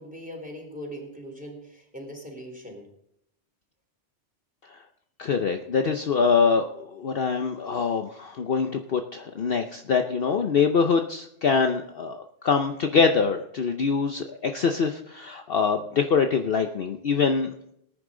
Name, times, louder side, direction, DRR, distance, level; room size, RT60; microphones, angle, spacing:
voice 1, 0.0-2.9, equal, 5° right, 1 dB, 3.7 m, -40 dB
voice 2, 5.2-17.7, left 5 dB, 55° left, 5 dB, 0.9 m, -24 dB
19.0 x 10.0 x 3.8 m, 0.76 s
omnidirectional pair, 1.3 m